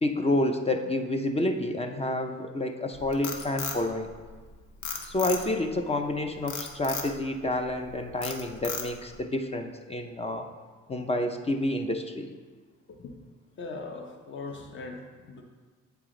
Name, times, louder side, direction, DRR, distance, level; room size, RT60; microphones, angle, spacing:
voice 1, 0.0-4.1 5.0-10.5 10.9-12.3, left 1 dB, 20° left, 5 dB, 0.5 m, -29 dB
Frog, 2.9-4.4 4.8-5.7 6.5-7.1 7.6-7.9 8.2-9.1, left 5 dB, 80° left, 0.9 m, -35 dB
voice 2, 13.6-15.4, left 3 dB, 40° left, 3 dB, 0.9 m, -40 dB
7.7 x 4.8 x 3.8 m, 1.4 s
cardioid pair, 90°, 30 cm